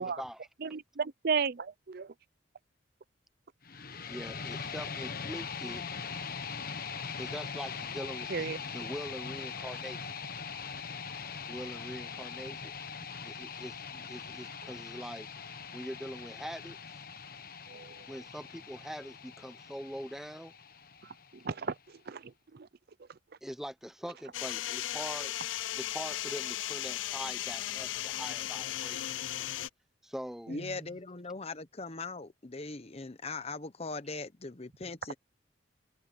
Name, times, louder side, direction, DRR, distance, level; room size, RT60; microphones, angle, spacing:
voice 1, 0.0-0.5 4.1-5.8 7.1-10.1 11.5-12.7 13.2-15.3 15.7-17.0 18.1-20.5 23.4-25.3 25.7-29.1 30.0-30.6, equal, ahead, 0.8 m, -43 dB
voice 2, 0.6-2.1 8.3-8.6 17.7-18.0 21.4-22.7 30.5-30.6, right 5 dB, 55° right, 0.6 m, -34 dB
sound 1, 3.6-21.6, left 6 dB, 50° left, 1.3 m, -42 dB
sound 2, 24.3-29.7, left 13 dB, 85° left, 0.4 m, -36 dB
voice 3, 30.5-35.1, left 3 dB, 35° left, 0.9 m, -40 dB
head